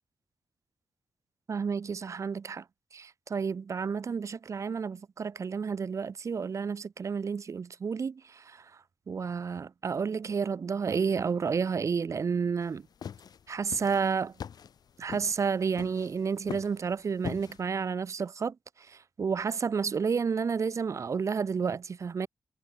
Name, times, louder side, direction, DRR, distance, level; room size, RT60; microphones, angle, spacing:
voice 1, 1.5-2.6 2.9-8.6 9.1-12.8 13.5-14.3 15.0-18.6 18.9-22.3, right 5 dB, 45° right, 0.8 m, -31 dB
sound 1, 12.6-17.6, left 7 dB, 65° left, 0.8 m, -42 dB
wide cardioid pair, 135°, 7 cm